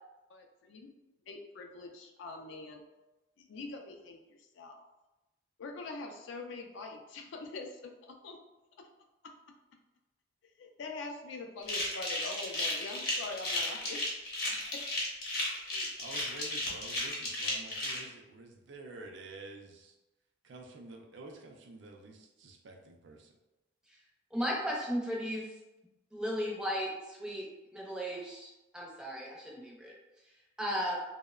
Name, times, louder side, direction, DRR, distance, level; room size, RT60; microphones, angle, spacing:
voice 1, 0.3-0.9 1.2-2.8 3.4-4.8 5.6-8.4 10.6-14.2 14.7-15.1 15.6-15.9, left 3 dB, 75° left, 3 dB, 0.4 m, -44 dB
sound 1, 11.6-18.0, left 2 dB, 55° left, 0.8 m, -34 dB
voice 2, 16.0-19.9 20.4-23.3, right 2 dB, 65° right, 2 dB, 0.4 m, -49 dB
voice 3, 24.3-25.4 26.1-27.4 27.7-29.9 30.6-31.0, equal, 5° right, -3 dB, 0.4 m, -35 dB
2.7 x 2.0 x 2.3 m, 1.0 s
head